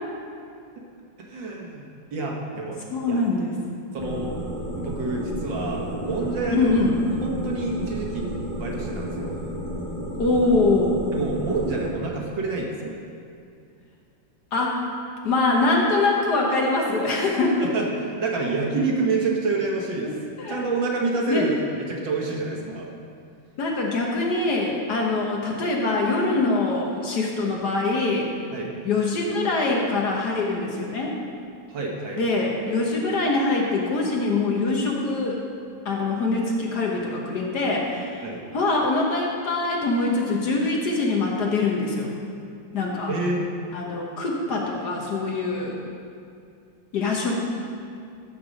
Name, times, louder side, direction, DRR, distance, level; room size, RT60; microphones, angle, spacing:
voice 1, 1.3-2.8 3.0-3.2 3.9-4.3 4.8-6.8 7.2-8.3 8.5-9.4 11.1-13.0 17.6-20.1 20.5-22.9 28.5-28.7 31.7-32.2 38.2-38.4 43.1-43.5 45.5-45.6, right 3 dB, 65° right, -1 dB, 1.9 m, -28 dB
voice 2, 2.9-3.5 6.5-6.9 10.2-11.0 14.5-14.9 15.2-17.7 20.0-20.1 20.4-20.6 21.3-21.5 23.6-28.3 28.8-31.1 32.2-35.4 35.8-38.2 38.5-42.1 42.7-43.1 43.7-45.8 46.9-47.4, left 3 dB, 55° left, -1 dB, 1.5 m, -23 dB
sound 1, 4.0-11.9, equal, 20° left, 1.6 m, -32 dB
13.5 x 4.7 x 6.3 m, 2.4 s
omnidirectional pair, 2.2 m